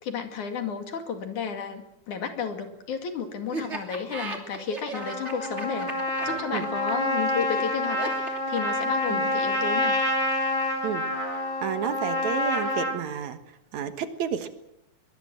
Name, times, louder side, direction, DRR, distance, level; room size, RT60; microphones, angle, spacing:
voice 1, 0.0-5.9 6.2-9.9, left 6 dB, 70° left, 6 dB, 3.6 m, -32 dB
Laughter, 3.5-9.3, right 3 dB, 20° right, 2.8 m, -37 dB
Trumpet, 4.9-13.0, left 1 dB, 10° left, 3.5 m, -27 dB
voice 2, 11.6-13.4 13.7-14.5, right 8 dB, 65° right, 9 dB, 2.6 m, -31 dB
23.0 x 21.0 x 7.7 m, 0.86 s
omnidirectional pair, 3.6 m